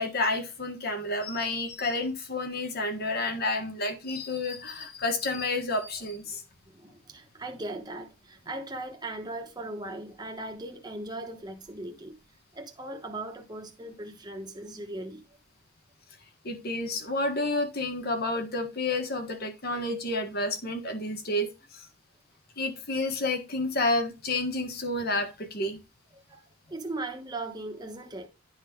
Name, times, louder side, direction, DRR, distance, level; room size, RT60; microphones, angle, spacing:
voice 1, 0.0-6.4 16.4-21.9 22.6-25.8, left 2 dB, 45° left, 1.5 m, -30 dB
voice 2, 6.7-12.2 12.5-15.2 26.1-28.3, right 2 dB, 20° right, 1.2 m, -38 dB
11.0 x 3.9 x 5.1 m
head